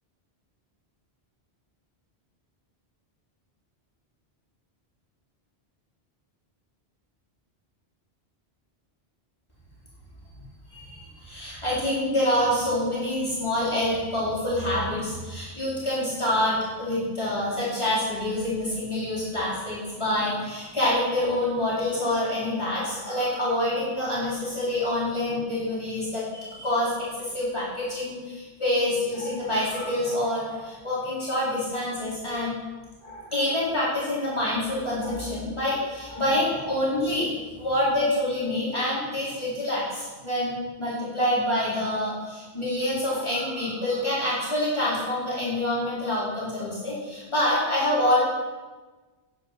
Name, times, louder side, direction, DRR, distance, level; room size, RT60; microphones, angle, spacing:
voice 1, 10.7-26.9 27.2-32.5 33.0-37.3 37.6-40.5 40.8-48.2, left 1 dB, 25° left, -9 dB, 4.2 m, -26 dB
10.5 x 9.6 x 5.9 m, 1.3 s
omnidirectional pair, 1.1 m